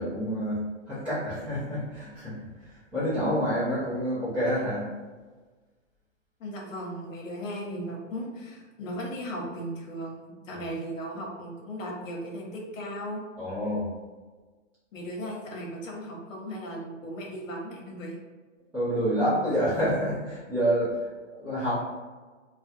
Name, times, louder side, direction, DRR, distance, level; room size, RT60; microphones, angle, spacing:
voice 1, 0.0-4.9 10.5-10.6 13.4-13.9 18.7-21.7, equal, 5° right, -14 dB, 0.4 m, -28 dB
voice 2, 6.4-13.2 14.9-18.2, equal, 75° left, 0 dB, 0.9 m, -36 dB
2.3 x 2.1 x 2.6 m, 1.3 s
hypercardioid pair, 150°, 39 cm